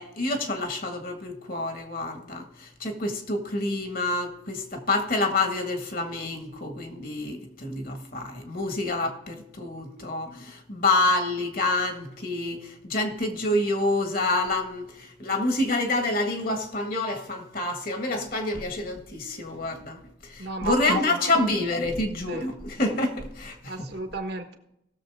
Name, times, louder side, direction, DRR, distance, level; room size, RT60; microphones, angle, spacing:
voice 1, 0.0-23.9, left 2 dB, 45° left, 1.7 m, -27 dB
voice 2, 20.4-21.3 22.3-22.5 23.7-24.6, right 3 dB, 55° right, 1.2 m, -34 dB
18.0 x 7.0 x 3.5 m
head